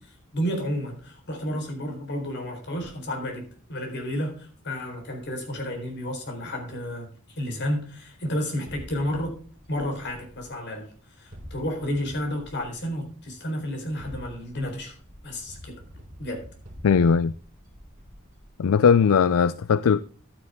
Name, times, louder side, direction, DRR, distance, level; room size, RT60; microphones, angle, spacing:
voice 1, 0.3-7.1 7.4-9.4 9.7-10.9 11.2-14.9 15.2-15.7 16.2-16.5, equal, 55° left, 4.0 m, -31 dB
sound 1, 8.7-10.8 11.3-13.1 13.8-18.9, equal, 40° right, 3.5 m, -46 dB
voice 2, 16.8-17.3 18.6-20.0, left 6 dB, 75° left, 0.4 m, -19 dB
12.0 x 9.4 x 3.5 m
head